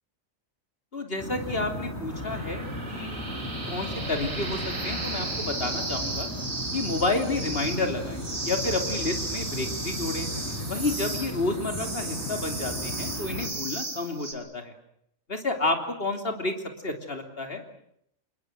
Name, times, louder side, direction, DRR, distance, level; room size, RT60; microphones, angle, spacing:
voice 1, 0.9-3.2 3.6-6.3 6.7-10.3 10.7-14.7 15.3-16.5 16.8-17.6, left 2 dB, 45° left, 6 dB, 3.2 m, -30 dB
sound 1, 1.2-13.5, left 1 dB, 10° left, 5.4 m, -36 dB
sound 2, 2.1-14.3, right 2 dB, 75° right, 3.9 m, -35 dB
27.5 x 21.0 x 7.6 m, 0.71 s
omnidirectional pair, 1.4 m